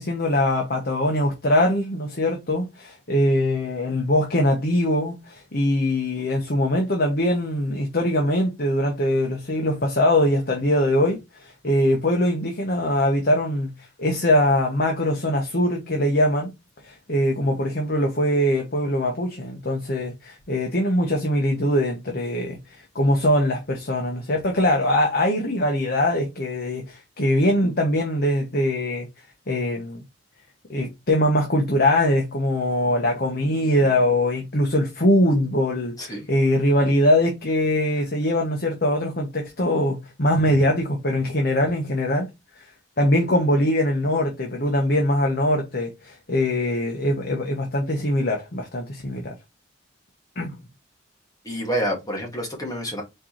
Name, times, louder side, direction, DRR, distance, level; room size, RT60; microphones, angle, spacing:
voice 1, 0.0-16.5 16.8-29.1 29.5-30.0 30.7-42.3 42.6-42.7 43.0-49.3 50.4-50.6, left 1 dB, 50° left, 1.0 m, -22 dB
voice 2, 36.0-36.3 51.4-53.0, equal, 20° left, 1.7 m, -28 dB
4.6 x 3.8 x 3.0 m
head